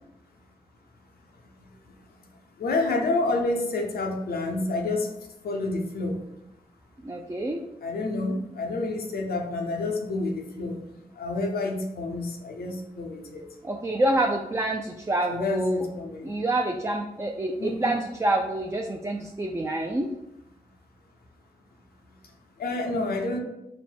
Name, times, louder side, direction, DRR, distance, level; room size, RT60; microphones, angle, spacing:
voice 1, 2.6-5.1 5.4-6.2 7.8-10.8 11.2-13.4 15.3-16.3 17.6-18.0 22.6-23.4, left 2 dB, 90° left, 1 dB, 0.7 m, -28 dB
voice 2, 7.0-7.6 13.6-15.8 16.2-20.1, right 1 dB, 20° right, 2 dB, 0.4 m, -27 dB
4.1 x 2.1 x 4.3 m, 0.88 s
cardioid pair, 55°, 15 cm